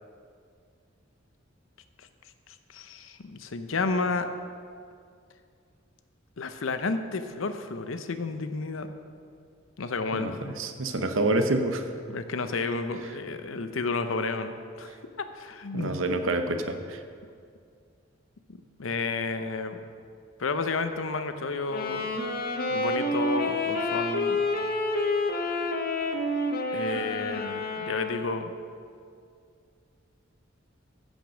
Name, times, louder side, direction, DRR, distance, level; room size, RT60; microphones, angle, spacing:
voice 1, 2.5-4.3 6.4-8.9 9.8-10.6 12.1-16.0 18.8-19.8 20.4-22.2 22.7-24.4 26.7-28.5, left 3 dB, 90° left, 9 dB, 0.7 m, -31 dB
voice 2, 10.1-11.9 15.7-17.0, right 2 dB, 90° right, 7 dB, 0.9 m, -27 dB
Wind instrument woodwind instrument, 21.7-28.5, left 2 dB, 50° left, 0.9 m, -29 dB
15.0 x 5.3 x 6.3 m, 2.3 s
head